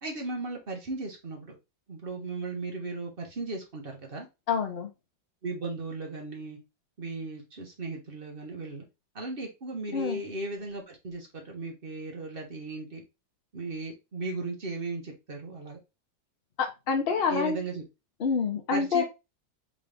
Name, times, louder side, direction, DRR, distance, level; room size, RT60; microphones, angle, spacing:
voice 1, 0.0-1.5 1.9-4.3 5.4-6.6 7.0-8.8 9.1-13.0 13.5-15.8 17.3-17.8 18.7-19.0, right 3 dB, 35° right, 1 dB, 1.1 m, -36 dB
voice 2, 4.5-4.9 9.9-10.2 16.6-17.6 18.2-19.0, left 5 dB, 65° left, 4 dB, 0.5 m, -27 dB
3.8 x 3.8 x 3.4 m, 0.26 s
omnidirectional pair, 2.0 m